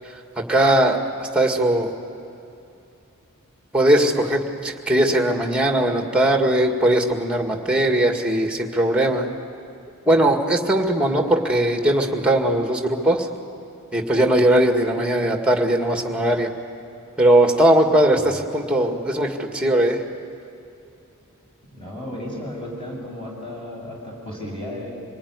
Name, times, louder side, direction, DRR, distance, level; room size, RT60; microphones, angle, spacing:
voice 1, 0.4-1.9 3.7-9.3 10.1-13.3 13.9-16.5 17.2-20.0, right 1 dB, 5° right, 3 dB, 2.0 m, -19 dB
voice 2, 21.7-24.9, left 1 dB, 25° left, -2 dB, 7.5 m, -34 dB
26.0 x 20.0 x 9.7 m, 2.8 s
head